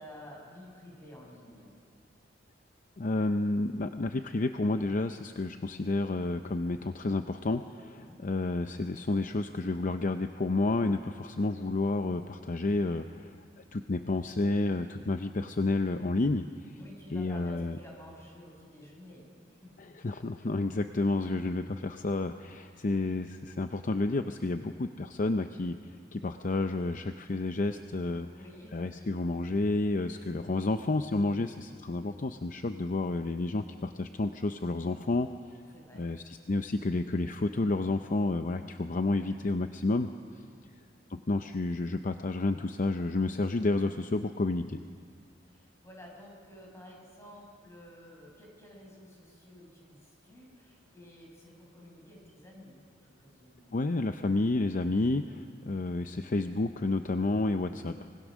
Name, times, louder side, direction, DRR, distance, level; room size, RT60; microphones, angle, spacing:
voice 1, 0.0-1.7 8.0-8.2 16.8-20.0 21.2-21.3 22.5-22.6 28.1-29.1 30.1-30.2 35.7-36.1 40.5-40.7 45.4-53.8, left 1 dB, 15° left, -2 dB, 5.9 m, -52 dB
voice 2, 3.0-13.3 13.7-16.7 17.1-17.8 19.8-25.8 26.1-28.3 28.7-35.3 36.0-40.1 41.1-44.8 53.7-58.1, left 2 dB, 45° left, 8 dB, 0.6 m, -30 dB
24.5 x 20.5 x 6.3 m, 2.1 s
head